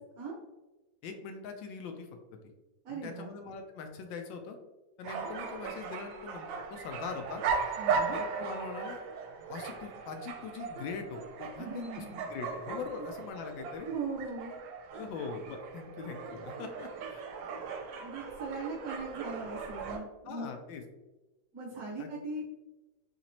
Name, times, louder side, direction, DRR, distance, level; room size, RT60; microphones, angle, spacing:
voice 1, 1.0-2.4 2.9-4.6 5.0-7.4 8.1-9.0 9.5-13.9 14.9-17.2 20.2-20.8 22.0-22.1, left 5 dB, 85° left, 5 dB, 1.3 m, -42 dB
voice 2, 2.8-3.4 7.8-8.2 11.6-12.2 12.5-12.6 13.8-14.5 18.0-20.5 21.5-22.5, right 3 dB, 60° right, -6 dB, 1.2 m, -39 dB
sound 1, 5.0-20.0, right 5 dB, 80° right, 1.3 m, -38 dB
4.3 x 2.9 x 2.8 m, 1.1 s
omnidirectional pair, 2.0 m